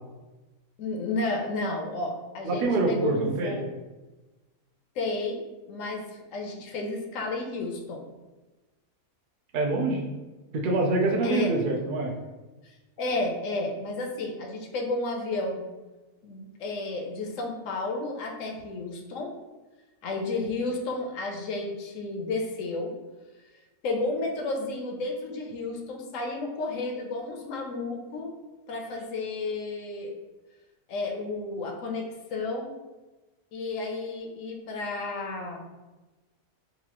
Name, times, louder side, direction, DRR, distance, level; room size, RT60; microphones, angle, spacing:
voice 1, 0.8-3.7 4.9-8.1 11.2-11.5 12.6-15.7 16.2-19.3 20.0-22.9 23.8-28.3 28.7-30.1 30.9-32.7 33.5-35.6, left 2 dB, 70° left, 2 dB, 0.9 m, -32 dB
voice 2, 2.4-3.6 9.5-10.0 10.5-12.1, right 2 dB, 85° right, 0 dB, 0.4 m, -25 dB
4.0 x 2.4 x 2.9 m, 1.2 s
omnidirectional pair, 1.5 m